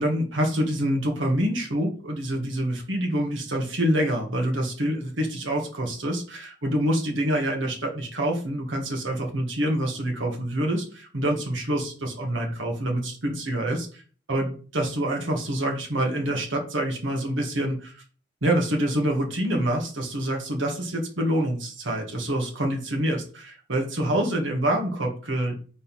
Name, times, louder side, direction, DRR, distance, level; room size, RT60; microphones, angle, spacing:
voice 1, 0.0-14.0 14.3-18.0 18.4-25.5, right 1 dB, 85° right, 0 dB, 1.6 m, -26 dB
4.5 x 4.0 x 5.3 m, 0.40 s
head